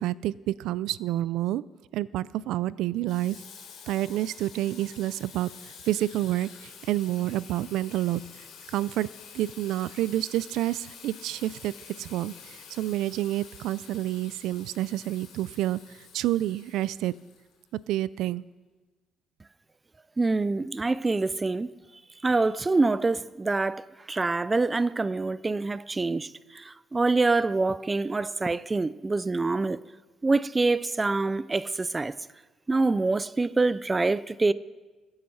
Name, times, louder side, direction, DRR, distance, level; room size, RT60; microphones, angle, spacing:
voice 1, 0.0-1.6 1.9-3.4 3.9-5.5 5.9-8.2 8.7-9.1 9.3-15.8 16.1-17.1 17.9-18.5, right 14 dB, 90° right, 0.3 m, -29 dB
Water tap faucet / Sink (filling or washing), 3.1-17.8, left 6 dB, 85° left, 3.4 m, -48 dB
voice 2, 20.2-21.7 22.2-29.8 30.2-32.1 32.7-34.5, right 3 dB, 15° right, 0.3 m, -25 dB
21.0 x 8.8 x 5.6 m
cardioid pair, 155°, 0 cm